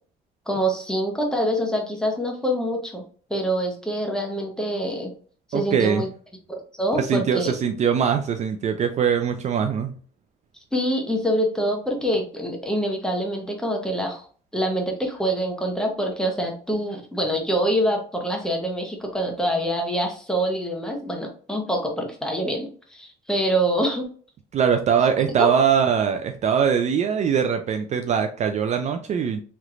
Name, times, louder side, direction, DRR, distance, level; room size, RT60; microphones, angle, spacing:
voice 1, 0.5-3.0 3.3-5.1 5.5-6.1 6.8-7.5 10.7-14.3 14.5-24.1 25.3-25.6, equal, 5° left, 1 dB, 0.9 m, -25 dB
voice 2, 5.5-6.1 6.9-9.9 24.5-29.4, right 7 dB, 45° right, 6 dB, 0.4 m, -22 dB
3.2 x 2.9 x 2.4 m, 0.43 s
cardioid pair, 110°, 17 cm